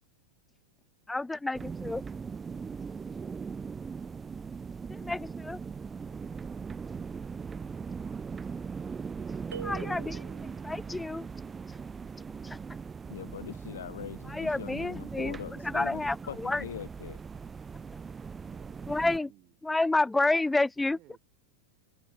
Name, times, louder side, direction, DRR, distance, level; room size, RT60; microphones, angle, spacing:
voice 1, 1.1-2.0 4.9-5.6 9.6-11.3 12.4-12.6 14.3-15.4 15.6-16.6 18.9-19.3 19.6-21.0, left 2 dB, 5° left, 0.6 m, -30 dB
sound 1, 1.5-19.2, right 5 dB, 15° right, 0.9 m, -40 dB
sound 2, 9.5-10.7, right 8 dB, 65° right, 1.6 m, -42 dB
voice 2, 13.1-17.2, left 9 dB, 65° left, 0.6 m, -42 dB
voice 3, 18.5-19.5 20.8-21.2, right 17 dB, 35° right, 6.9 m, -56 dB
figure-of-eight pair, 90°, 0 cm